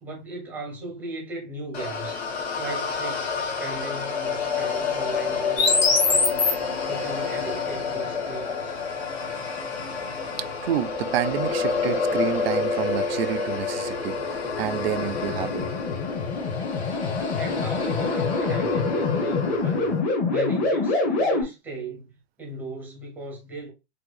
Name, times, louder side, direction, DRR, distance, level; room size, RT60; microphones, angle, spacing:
voice 1, 0.0-2.2 2.6-8.8 17.3-19.9 20.3-23.7, right 2 dB, 5° right, 0.6 m, -37 dB
sound 1, 1.7-20.0, left 4 dB, 70° left, 1.4 m, -28 dB
sound 2, 5.6-6.5 14.6-21.4, left 3 dB, 30° left, 1.3 m, -25 dB
voice 2, 10.6-15.7, right 11 dB, 65° right, 0.5 m, -29 dB
4.7 x 2.3 x 2.4 m
supercardioid pair, 165°, 32 cm